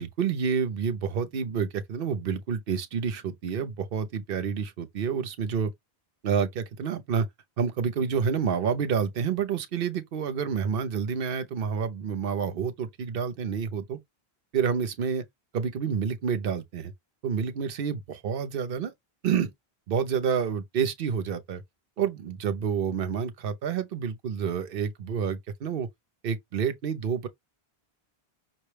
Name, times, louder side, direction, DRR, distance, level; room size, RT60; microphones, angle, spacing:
voice 1, 0.0-5.7 6.2-7.3 7.6-14.0 14.5-15.2 15.5-16.9 17.2-18.9 19.2-19.5 19.9-21.6 22.0-25.9 26.2-27.3, right 7 dB, 65° right, 0.9 m, -28 dB
5.8 x 2.2 x 3.2 m
omnidirectional pair, 1.1 m